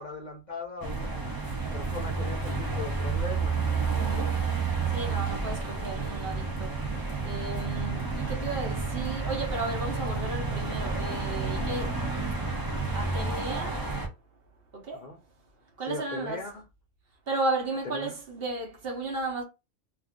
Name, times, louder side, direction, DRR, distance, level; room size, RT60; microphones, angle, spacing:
voice 1, 0.0-1.4 1.7-3.6 15.0-15.2 15.9-16.6 17.9-18.1, left 4 dB, 50° left, 0.5 m, -39 dB
sound 1, 0.8-14.1, right 4 dB, 30° right, 0.4 m, -30 dB
voice 2, 3.9-4.4 4.9-6.8 7.2-12.0 12.9-13.8 14.7-15.0 15.8-16.5 17.3-19.4, right 2 dB, 55° right, 1.0 m, -34 dB
2.4 x 2.4 x 3.5 m
omnidirectional pair, 1.3 m